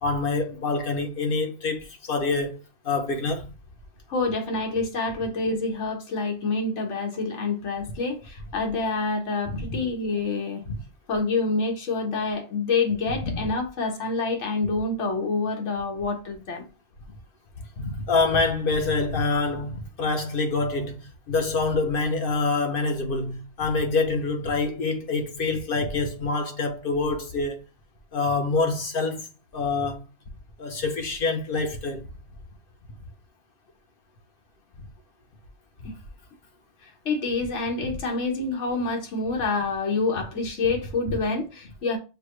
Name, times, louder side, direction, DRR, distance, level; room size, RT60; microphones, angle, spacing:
voice 1, 0.0-2.6 2.8-3.5 9.5-9.8 10.7-10.8 13.2-13.4 17.8-27.6 28.1-29.3 29.5-30.0 30.6-32.0, left 3 dB, 50° left, 0.9 m, -26 dB
voice 2, 4.1-10.6 11.1-16.7 35.8-35.9 36.8-42.0, left 3 dB, 70° left, 1.4 m, -27 dB
6.7 x 2.2 x 3.1 m
omnidirectional pair, 1.3 m